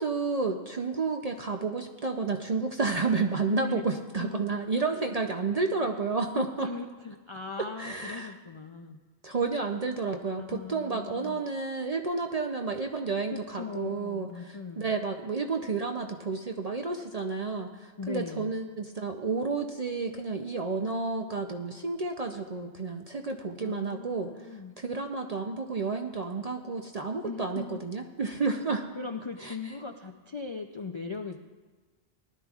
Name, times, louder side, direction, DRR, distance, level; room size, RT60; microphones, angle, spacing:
voice 1, 0.0-6.7 7.8-8.3 9.2-24.3 24.8-28.8 29.4-29.6, right 4 dB, 50° right, 4 dB, 0.5 m, -31 dB
voice 2, 3.5-3.8 4.2-4.4 4.9-5.0 6.3-9.0 10.4-11.4 13.3-14.9 18.0-18.5 23.6-24.7 27.2-27.8 28.9-31.4, left 4 dB, 50° left, 4 dB, 0.3 m, -39 dB
19.0 x 12.0 x 2.4 m, 1.3 s
omnidirectional pair, 1.3 m